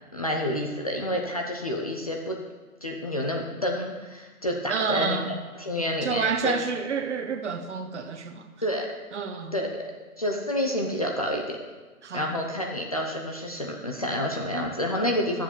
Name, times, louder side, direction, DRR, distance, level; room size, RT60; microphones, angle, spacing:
voice 1, 0.1-2.4 2.8-6.6 8.6-8.9 9.5-9.9 10.2-11.6 12.1-15.4, left 1 dB, 25° left, 1 dB, 0.5 m, -29 dB
voice 2, 4.7-5.4 6.0-8.5 9.1-9.6 12.0-12.3, right 5 dB, 50° right, 7 dB, 1.1 m, -29 dB
11.0 x 7.3 x 5.2 m, 1.3 s
hypercardioid pair, 160°, 44 cm